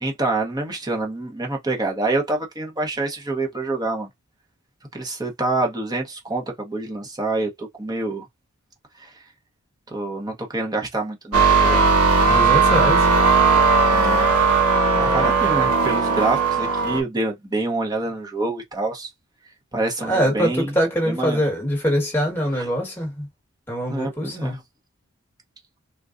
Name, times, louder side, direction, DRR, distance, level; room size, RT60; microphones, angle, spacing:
voice 1, 0.0-4.1 4.9-8.3 9.0-9.1 9.9-11.8 13.9-14.3 14.7-19.1 19.7-20.7 21.1-21.4 22.5-22.7 23.9-24.6, right 2 dB, 15° right, 0.8 m, -26 dB
sound 1, 11.3-17.0, right 4 dB, 80° right, 0.9 m, -17 dB
voice 2, 12.2-13.1 20.0-23.3 23.7-24.6, equal, 10° left, 1.3 m, -23 dB
3.6 x 2.3 x 2.5 m
head